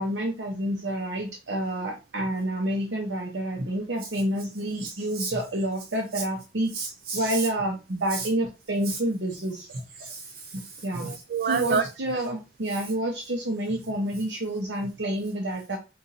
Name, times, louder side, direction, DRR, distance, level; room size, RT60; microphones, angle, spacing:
voice 1, 0.0-6.7 7.1-9.8 10.5-11.2 11.5-15.8, right 1 dB, 85° right, 0 dB, 0.8 m, -29 dB
voice 2, 4.8-5.3 6.7-7.5 8.1-8.3 8.9-9.0 10.0-11.9, right 5 dB, 55° right, 8 dB, 0.3 m, -30 dB
4.1 x 2.5 x 3.9 m, 0.29 s
head